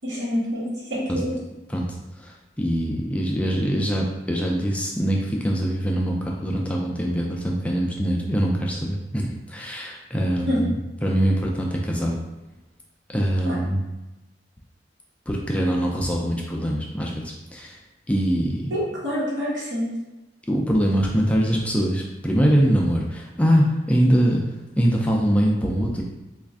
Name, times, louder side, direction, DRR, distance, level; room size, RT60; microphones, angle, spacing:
voice 1, 0.0-1.3 10.5-10.6 13.4-13.5 18.7-19.9, equal, 90° right, -7 dB, 1.1 m, -26 dB
voice 2, 2.2-10.7 11.0-12.1 13.1-13.8 15.3-17.8 18.1-18.7 20.5-24.4 24.8-26.0, equal, 5° left, -2 dB, 0.3 m, -23 dB
3.1 x 2.4 x 3.5 m, 1.0 s
head